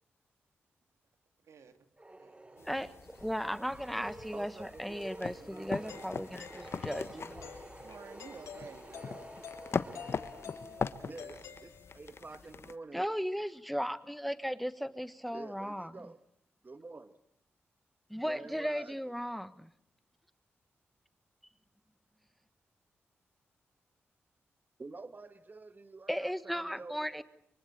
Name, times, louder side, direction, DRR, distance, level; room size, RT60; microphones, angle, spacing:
voice 1, 1.4-1.8 2.2-3.0 7.8-9.3 10.6-11.8, right 6 dB, 75° right, 2.5 m, -54 dB
sound 1, 2.0-11.1, right 2 dB, 20° right, 1.7 m, -51 dB
sound 2, 2.6-12.7, left 5 dB, 55° left, 1.3 m, -41 dB
voice 2, 2.6-7.1 12.9-15.9 18.1-19.7 26.1-27.2, equal, ahead, 1.4 m, -36 dB
voice 3, 4.3-6.0 7.1-7.6 11.0-13.1 15.3-16.2 16.6-17.2 18.3-19.0 24.8-27.2, right 3 dB, 40° right, 1.8 m, -48 dB
Doorbell, 5.9-12.2, left 7 dB, 85° left, 3.5 m, -50 dB
24.5 x 24.5 x 8.8 m
supercardioid pair, 45°, 5 cm